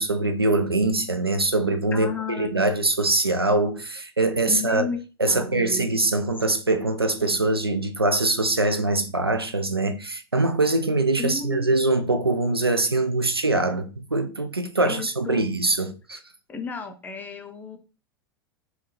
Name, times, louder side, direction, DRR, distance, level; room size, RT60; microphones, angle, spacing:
voice 1, 0.0-4.8 5.2-16.2, right 2 dB, 90° right, 0.4 m, -23 dB
voice 2, 1.9-2.7 4.5-5.0 5.3-5.9 11.2-11.7 14.8-15.5 16.5-17.8, left 5 dB, 15° left, 0.5 m, -33 dB
3.4 x 2.3 x 2.8 m
figure-of-eight pair, 90°, 12 cm